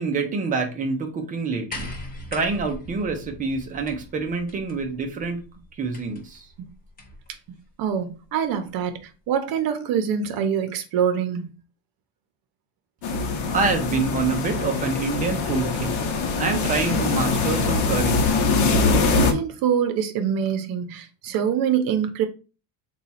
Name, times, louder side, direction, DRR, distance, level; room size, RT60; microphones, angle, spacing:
voice 1, 0.0-1.9 2.3-5.5 5.8-6.5 13.4-15.9 16.4-18.4, right 4 dB, 20° right, 0.3 m, -26 dB
sound 1, 1.7-7.3 8.4-8.5, left 1 dB, 20° left, 0.6 m, -41 dB
voice 2, 7.8-11.5 19.1-22.3, right 8 dB, 50° right, 0.7 m, -25 dB
sound 2, 13.0-19.3, left 4 dB, 60° left, 0.8 m, -23 dB
4.0 x 2.3 x 4.0 m
cardioid pair, 180°, 47 cm